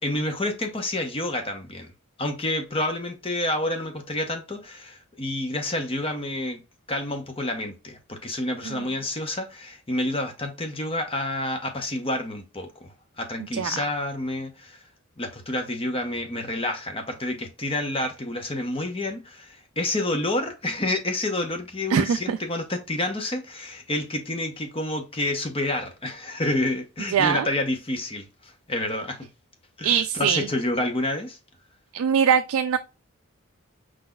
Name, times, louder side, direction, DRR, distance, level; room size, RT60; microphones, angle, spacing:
voice 1, 0.0-1.9 2.2-6.6 6.9-14.8 15.2-29.3 29.8-31.4, left 1 dB, 25° left, 0.8 m, -29 dB
voice 2, 21.9-22.4 27.1-27.5 29.8-30.5 31.9-32.8, right 7 dB, 75° right, 0.3 m, -22 dB
5.0 x 3.9 x 2.3 m
head